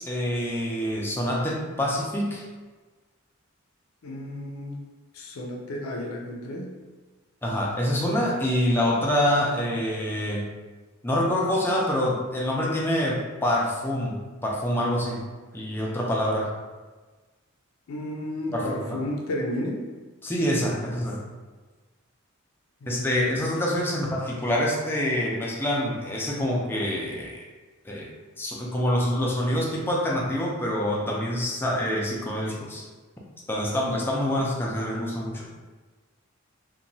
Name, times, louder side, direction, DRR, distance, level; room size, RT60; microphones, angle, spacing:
voice 1, 0.0-2.4 7.4-10.4 11.0-15.3 15.5-16.5 18.5-19.0 20.2-21.2 22.9-27.4 27.8-28.1 28.4-32.8 33.5-35.5, left 1 dB, 10° left, -3 dB, 0.4 m, -26 dB
voice 2, 4.0-4.8 5.1-6.7 17.9-19.8 22.8-23.5, left 1 dB, 80° left, 0 dB, 0.4 m, -33 dB
2.9 x 2.2 x 2.6 m, 1.3 s
head